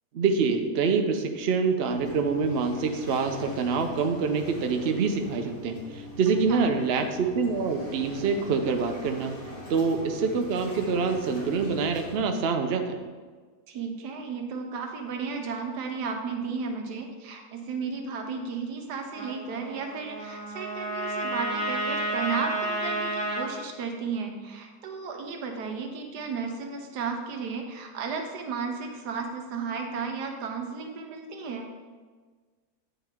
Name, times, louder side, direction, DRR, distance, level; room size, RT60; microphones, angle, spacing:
voice 1, 0.1-9.4 9.7-13.0, right 5 dB, 60° right, 5 dB, 0.6 m, -26 dB
Waves surf, 1.8-12.1, left 1 dB, 80° left, 2.7 m, -42 dB
voice 2, 13.7-31.7, right 5 dB, 80° right, 3 dB, 1.5 m, -34 dB
Trumpet, 19.1-23.5, right 1 dB, 5° left, 1.2 m, -31 dB
9.0 x 5.6 x 3.5 m, 1.5 s
omnidirectional pair, 1.7 m